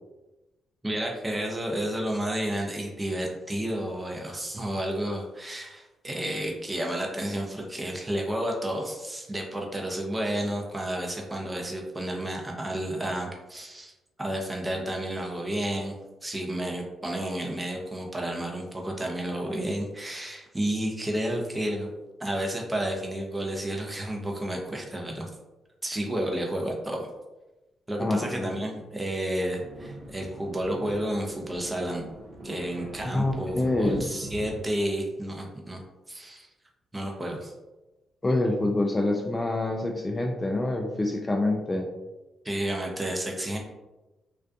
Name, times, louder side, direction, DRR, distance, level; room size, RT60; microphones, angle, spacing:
voice 1, 0.8-13.9 14.2-16.0 16.2-21.9 22.2-25.3 25.8-27.1 27.9-32.0 32.4-35.8 36.1-36.5 36.9-37.5 42.4-43.6, right 1 dB, 20° right, 0 dB, 0.6 m, -31 dB
voice 2, 28.0-28.5 33.1-34.1 38.2-41.9, left 2 dB, 25° left, 1 dB, 0.4 m, -26 dB
sound 1, 29.6-34.6, right 1 dB, 60° right, 0.7 m, -41 dB
2.4 x 2.2 x 2.5 m, 1.1 s
hypercardioid pair, 40°, 0 cm